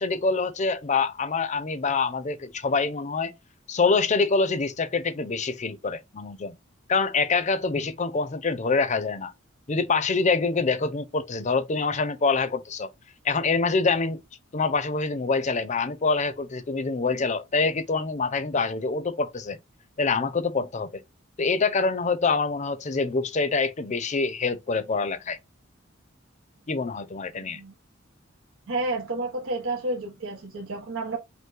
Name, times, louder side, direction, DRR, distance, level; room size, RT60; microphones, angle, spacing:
voice 1, 0.0-3.3 3.7-6.6 6.9-9.3 9.7-12.9 13.2-14.2 14.5-19.6 20.0-21.0 21.4-25.4 26.7-27.6, left 4 dB, 35° left, 0.6 m, -25 dB
voice 2, 27.3-27.7 28.7-31.2, right 2 dB, 85° right, 0.9 m, -30 dB
5.4 x 2.1 x 3.7 m
head